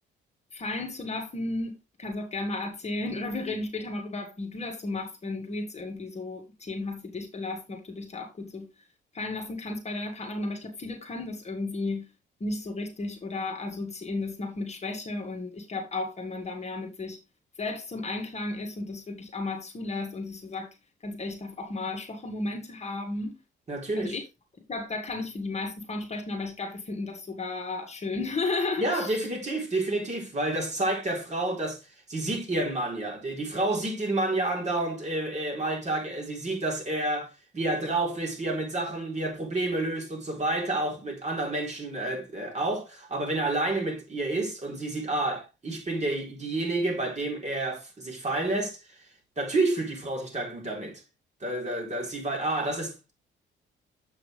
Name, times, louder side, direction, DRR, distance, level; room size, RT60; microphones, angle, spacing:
voice 1, 0.5-8.7 9.1-12.1 12.4-17.2 17.6-20.7 21.0-23.3 24.0-24.2 24.7-29.3, left 2 dB, 35° left, 1.8 m, -34 dB
voice 2, 23.7-24.2 28.8-31.8 32.1-49.0 49.4-51.0 51.4-53.1, right 2 dB, 35° right, 3.9 m, -29 dB
7.6 x 5.8 x 3.4 m
cardioid pair, 90°, 20 cm